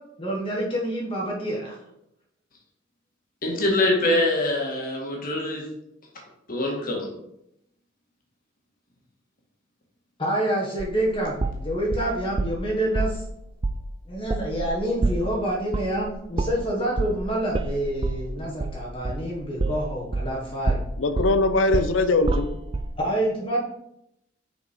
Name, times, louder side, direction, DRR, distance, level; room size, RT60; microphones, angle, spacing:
voice 1, 0.2-1.7 10.2-13.2 14.1-20.8 23.0-23.6, right 1 dB, 30° left, -3 dB, 1.2 m, -27 dB
voice 2, 3.4-5.6 6.5-7.1, left 1 dB, 45° left, -1 dB, 1.8 m, -24 dB
sound 1, 10.8-12.6 12.9-13.2 13.6-13.8 14.1-20.4 20.7-22.9, right 2 dB, 30° right, 0.4 m, -27 dB
voice 3, 21.0-22.6, left 2 dB, 80° left, 10 dB, 0.6 m, -21 dB
6.2 x 5.1 x 4.5 m, 0.80 s
head